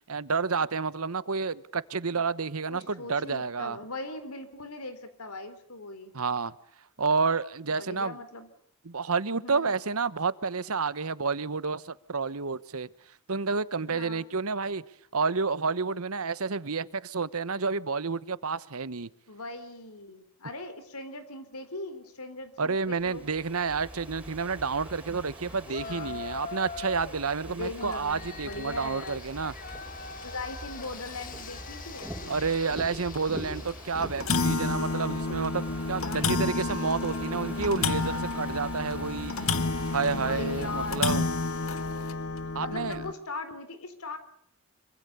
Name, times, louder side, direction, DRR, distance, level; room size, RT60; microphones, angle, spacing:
voice 1, 0.1-3.8 6.1-6.5 7.0-8.2 8.8-12.9 13.3-14.8 15.1-19.1 22.6-29.5 32.3-35.6 35.9-39.3 39.9-41.2 42.5-43.0, right 4 dB, 80° right, 1.1 m, -30 dB
voice 2, 2.7-6.1 7.8-8.5 9.3-9.8 13.9-14.2 19.3-23.3 25.5-26.2 27.5-29.4 30.2-32.2 36.0-38.0 40.1-41.1 42.6-44.2, left 2 dB, 90° left, 4.1 m, -40 dB
Ocean / Fireworks, 22.7-41.9, right 1 dB, 5° right, 6.0 m, -44 dB
Yell, 25.6-27.2 27.7-34.5, left 5 dB, 40° left, 1.1 m, -43 dB
sound 1, 27.9-28.1 28.5-28.6 29.1-29.2 30.2-30.3 30.8-30.9 31.4-31.5 32.0-32.1 33.1-33.3 33.7-33.8 34.0-43.1, left 3 dB, 70° left, 1.7 m, -30 dB
26.0 x 25.0 x 7.0 m
head